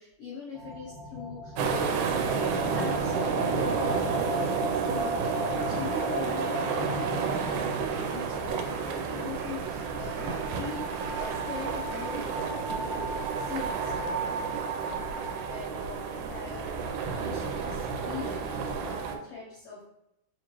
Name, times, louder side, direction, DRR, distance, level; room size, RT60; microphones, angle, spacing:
voice 1, 0.0-13.2 13.4-19.8, left 5 dB, 85° left, -4 dB, 1.3 m, -42 dB
sound 1, 0.5-19.2, right 1 dB, 60° left, 2.1 m, -37 dB
sound 2, 1.6-19.2, right 6 dB, 85° right, 2.1 m, -31 dB
4.8 x 3.0 x 2.9 m, 0.83 s
omnidirectional pair, 3.6 m